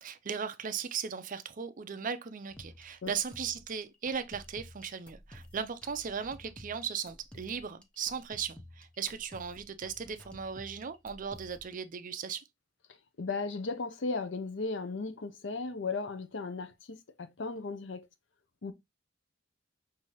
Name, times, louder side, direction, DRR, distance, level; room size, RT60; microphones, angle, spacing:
voice 1, 0.0-12.4, right 7 dB, 45° right, 0.5 m, -37 dB
sound 1, 2.5-11.8, left 1 dB, 5° left, 0.6 m, -53 dB
voice 2, 13.2-18.1 18.6-18.7, left 3 dB, 75° left, 0.6 m, -36 dB
5.7 x 2.7 x 3.0 m
head